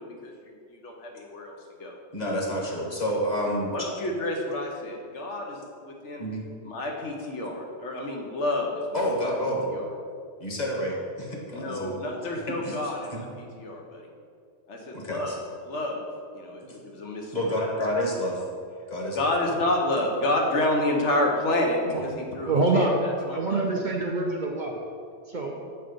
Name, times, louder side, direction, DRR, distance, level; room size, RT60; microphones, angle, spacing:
voice 1, 0.0-2.0 3.7-6.3 6.6-9.9 11.5-14.1 14.7-16.0 16.3-17.6 19.1-23.6, left 1 dB, 80° left, 0 dB, 1.2 m, -29 dB
voice 2, 2.1-3.7 6.2-6.5 8.9-9.7 10.4-12.0 12.6-12.7 13.1-13.2 15.0-15.3 16.7-16.8 17.3-18.4 18.9-19.3, equal, 35° left, -2 dB, 1.3 m, -29 dB
voice 3, 22.5-22.9 23.3-24.7 25.3-25.6, right 3 dB, 55° right, 0 dB, 0.6 m, -25 dB
7.1 x 3.8 x 5.2 m, 2.2 s
omnidirectional pair, 1.2 m